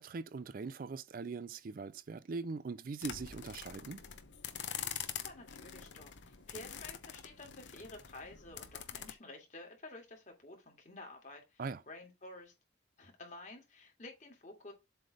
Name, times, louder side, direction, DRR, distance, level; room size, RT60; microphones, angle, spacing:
voice 1, 0.0-4.0 11.6-11.8, right 4 dB, 50° right, 0.4 m, -41 dB
sound 1, 3.0-9.1, left 9 dB, 70° left, 0.8 m, -45 dB
voice 2, 5.2-12.5 13.0-14.7, left 2 dB, 40° left, 2.2 m, -51 dB
7.7 x 3.2 x 5.2 m
head